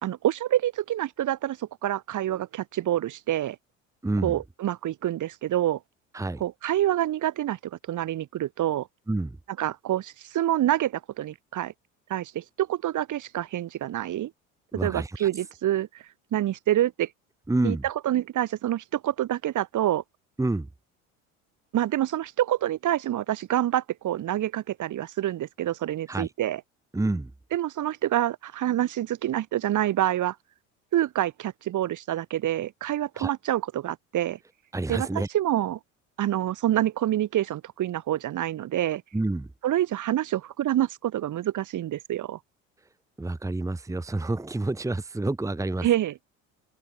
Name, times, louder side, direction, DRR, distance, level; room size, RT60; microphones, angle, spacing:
voice 1, 0.0-3.6 4.2-5.8 6.4-7.6 7.9-8.9 9.6-11.7 12.1-14.3 14.7-16.0 16.3-17.1 17.6-20.0 21.7-26.6 27.5-30.4 30.9-34.4 34.9-35.8 36.2-39.0 39.6-42.4 45.8-46.1, right 12 dB, 50° right, 2.5 m, -27 dB
voice 2, 4.0-4.4 6.1-6.4 9.1-9.4 14.7-15.3 17.5-17.8 20.4-20.7 26.1-26.3 26.9-27.3 33.2-33.3 34.7-35.3 39.1-39.5 43.2-45.9, right 2 dB, 10° right, 1.4 m, -28 dB
hypercardioid pair, 65°, 40 cm